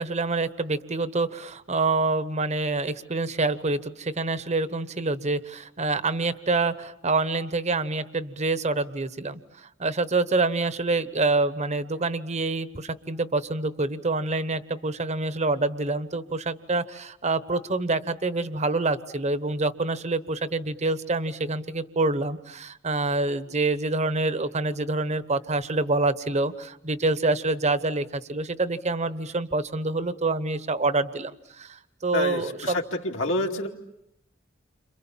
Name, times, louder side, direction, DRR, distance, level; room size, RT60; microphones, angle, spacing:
voice 1, 0.0-32.8, right 3 dB, 35° right, 14 dB, 1.0 m, -26 dB
voice 2, 32.1-33.7, left 2 dB, 75° left, 1 dB, 2.5 m, -28 dB
30.0 x 27.0 x 7.4 m, 0.81 s
head